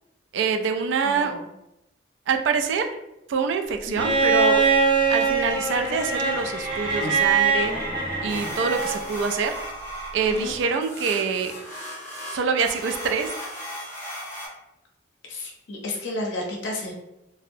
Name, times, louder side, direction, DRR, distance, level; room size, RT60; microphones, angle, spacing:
voice 1, 0.3-1.3 2.3-2.9 3.3-4.6 5.1-7.7 8.2-9.5 10.1-11.5 12.3-13.3, right 5 dB, 75° right, 6 dB, 0.3 m, -25 dB
voice 2, 1.0-1.5 3.9-4.1 10.3-10.5 15.2-16.9, left 1 dB, 80° left, 0 dB, 0.6 m, -32 dB
Bowed string instrument, 3.9-9.0 10.4-10.5, right 4 dB, 45° right, 0.9 m, -22 dB
sound 1, 8.3-14.5, equal, 15° left, 0.7 m, -36 dB
2.6 x 2.0 x 2.5 m, 0.91 s
head